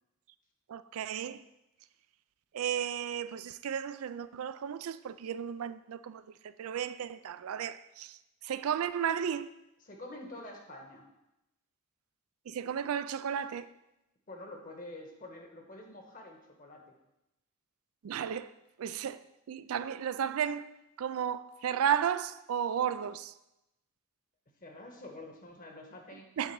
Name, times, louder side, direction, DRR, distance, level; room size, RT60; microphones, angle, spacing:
voice 1, 0.7-1.4 2.5-8.2 8.4-9.5 12.5-13.7 18.0-18.5 18.8-19.2 19.5-20.7 21.0-23.3 26.4-26.5, right 8 dB, 85° right, 0.4 m, -34 dB
voice 2, 9.8-11.0 14.3-16.8 24.6-26.3, left 1 dB, 40° left, 1.3 m, -47 dB
8.5 x 3.8 x 6.9 m
head